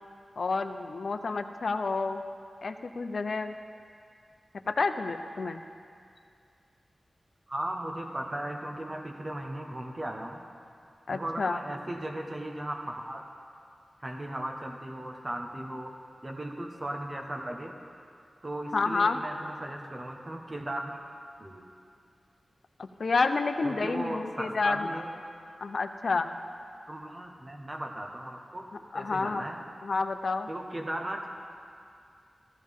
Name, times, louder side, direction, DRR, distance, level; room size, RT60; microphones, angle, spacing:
voice 1, 0.4-2.2 2.6-3.6 4.7-5.6 11.1-11.6 18.7-19.2 22.8-24.9 25.6-26.3 28.9-29.4 29.8-30.5, left 4 dB, 70° left, 7 dB, 0.5 m, -29 dB
voice 2, 7.5-10.4 11.1-13.2 14.0-15.9 16.2-17.8 18.4-21.0 21.4-21.7 23.6-25.1 26.9-29.6 30.5-31.3, right 1 dB, 35° right, 1 dB, 1.2 m, -37 dB
15.0 x 13.0 x 3.6 m, 2.4 s
cardioid pair, 45°, 0 cm